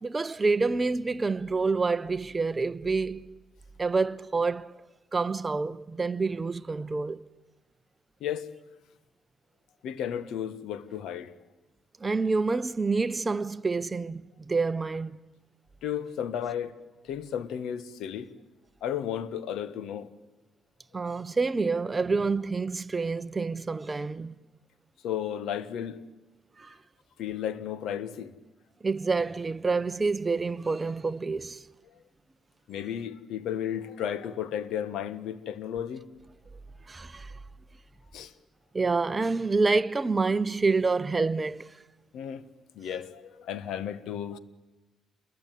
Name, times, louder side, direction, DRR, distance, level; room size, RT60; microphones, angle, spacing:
voice 1, 0.0-3.3 3.8-4.7 5.1-7.2 12.0-15.2 20.9-24.3 26.6-26.7 28.8-31.6 36.9-37.3 38.7-41.7, right 4 dB, 25° right, 0.9 m, -27 dB
voice 2, 9.8-11.3 15.8-16.8 17.0-18.3 18.8-20.1 25.0-26.0 27.2-28.3 32.7-36.1 38.1-38.3 42.1-42.5 42.7-44.4, left 9 dB, 80° left, 1.4 m, -33 dB
28.5 x 22.0 x 9.3 m
cardioid pair, 90°, 0 cm